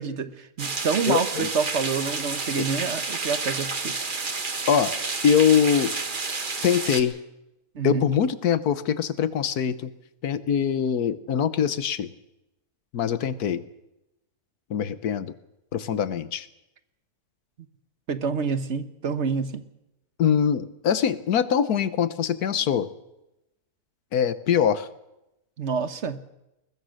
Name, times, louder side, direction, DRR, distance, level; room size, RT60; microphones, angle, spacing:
voice 1, 0.0-3.9 7.7-8.1 18.1-19.6 25.6-26.2, right 5 dB, 50° right, 11 dB, 1.3 m, -27 dB
sound 1, 0.6-7.0, right 4 dB, 35° right, 1.5 m, -30 dB
voice 2, 1.1-1.5 2.6-2.7 4.7-4.9 5.2-5.9 6.6-7.1 7.8-9.9 10.2-12.1 12.9-13.6 14.7-15.3 15.7-16.5 20.2-22.9 24.1-24.9, left 8 dB, 75° left, 14 dB, 1.5 m, -23 dB
21.0 x 20.5 x 6.5 m, 0.90 s
omnidirectional pair, 1.7 m